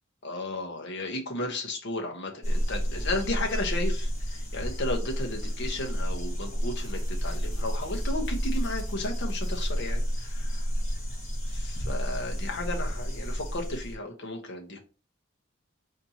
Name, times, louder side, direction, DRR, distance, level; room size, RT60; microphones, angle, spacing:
voice 1, 0.2-10.6 11.5-14.8, left 2 dB, 60° left, 1.0 m, -34 dB
sound 1, 2.4-13.9, equal, 35° left, 1.6 m, -30 dB
4.2 x 2.9 x 4.1 m
head